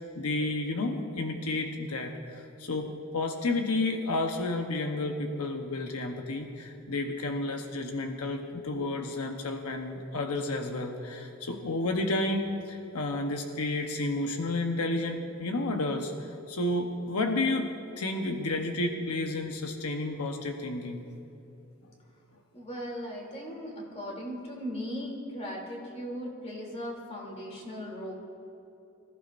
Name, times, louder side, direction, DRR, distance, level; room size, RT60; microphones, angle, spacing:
voice 1, 0.1-2.9 3.1-21.0, left 2 dB, 85° left, 3 dB, 1.0 m, -31 dB
voice 2, 22.5-28.1, equal, 30° left, -2 dB, 3.1 m, -38 dB
25.0 x 15.0 x 2.6 m, 2.9 s
head